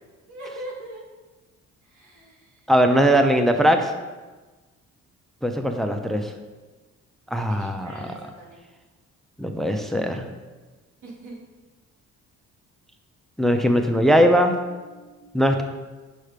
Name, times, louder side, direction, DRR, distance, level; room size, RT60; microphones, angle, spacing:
voice 1, 0.3-1.1 1.8-2.6 7.5-8.6 11.0-11.4 14.1-15.2, right 1 dB, 90° right, -3 dB, 2.2 m, -42 dB
voice 2, 2.7-3.9 5.4-6.3 7.3-8.1 9.4-10.3 13.4-14.5 15.3-15.6, equal, ahead, 5 dB, 0.6 m, -20 dB
6.3 x 5.6 x 5.0 m, 1.3 s
cardioid pair, 90°, 30 cm